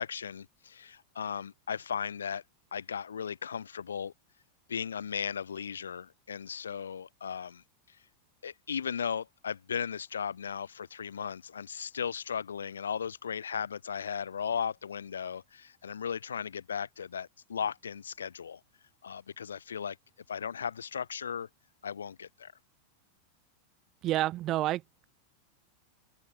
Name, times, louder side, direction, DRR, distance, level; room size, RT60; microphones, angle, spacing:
voice 1, 0.0-2.4 2.7-4.1 4.7-8.0 8.4-18.6 19.0-20.0 20.3-21.5 21.8-22.5, left 7 dB, 70° left, 1.3 m, -36 dB
voice 2, 24.0-25.1, right 15 dB, 35° right, 1.2 m, -29 dB
open air
figure-of-eight pair, 90°, 0 cm